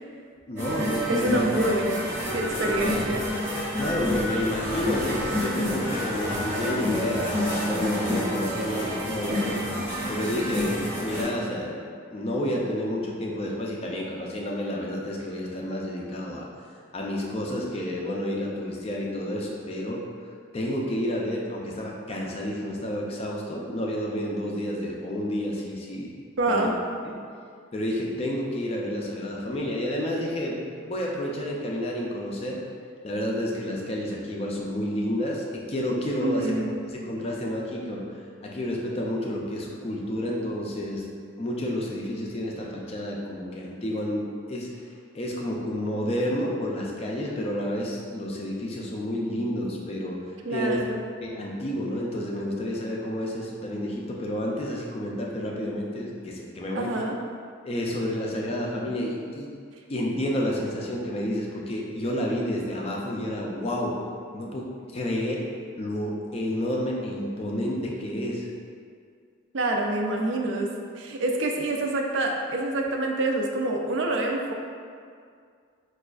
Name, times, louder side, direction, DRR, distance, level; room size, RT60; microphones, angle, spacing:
voice 1, 0.5-1.4 2.9-3.0 3.8-9.6 10.1-11.8 12.1-16.5 16.9-20.0 20.5-26.2 26.5-26.7 27.0-27.1 27.7-32.6 33.0-36.6 36.9-38.0 38.4-41.1 41.4-44.7 45.1-50.2 50.5-50.8 51.2-57.0 57.6-59.5 59.9-64.0 64.3-65.4 65.8-68.5, left 1 dB, 30° left, -2 dB, 0.3 m, -30 dB
sound 1, 0.6-11.2, equal, 10° right, 0.7 m, -28 dB
voice 2, 1.1-2.1 2.3-3.2 26.4-26.7 36.2-36.8 50.4-51.0 56.7-57.2 69.5-70.7 71.0-74.5, right 1 dB, 65° right, 1 dB, 0.4 m, -26 dB
4.9 x 2.3 x 2.3 m, 2.2 s
head